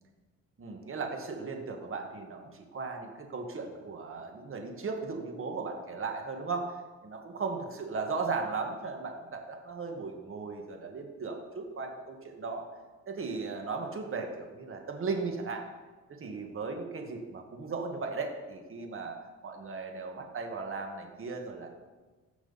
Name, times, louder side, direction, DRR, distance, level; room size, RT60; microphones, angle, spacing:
voice 1, 0.6-12.6 13.1-15.6 16.1-19.2 19.4-21.7, right 4 dB, 45° right, 3 dB, 1.8 m, -37 dB
15.0 x 6.1 x 4.2 m, 1.3 s
cardioid pair, 90°, 30 cm